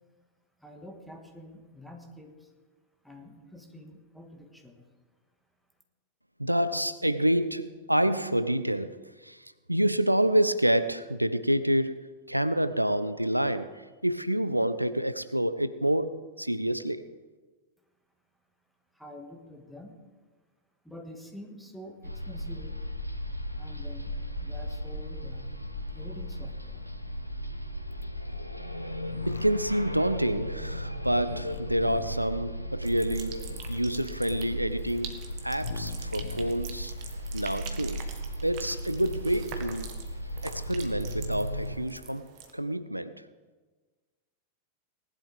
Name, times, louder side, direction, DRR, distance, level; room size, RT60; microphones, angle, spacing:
voice 1, 0.6-2.5 3.0-4.8 18.9-20.0 20.8-22.8 23.6-24.1 24.4-25.5 25.9-26.9, left 1 dB, ahead, 1.9 m, -47 dB
voice 2, 6.4-9.0 9.2-17.1 29.3-33.4 33.7-35.2 35.4-36.9 37.3-38.0 38.4-39.9 40.4-43.2, right 1 dB, 90° right, 0.4 m, -28 dB
sound 1, 22.0-41.8, equal, 90° left, 0.9 m, -36 dB
sound 2, 29.0-29.4 31.2-32.2 33.4-33.8 35.6-36.5, left 6 dB, 60° left, 1.0 m, -41 dB
sound 3, 32.8-42.5, right 7 dB, 45° right, 1.6 m, -46 dB
19.0 x 11.0 x 3.6 m
figure-of-eight pair, 90°, 0 cm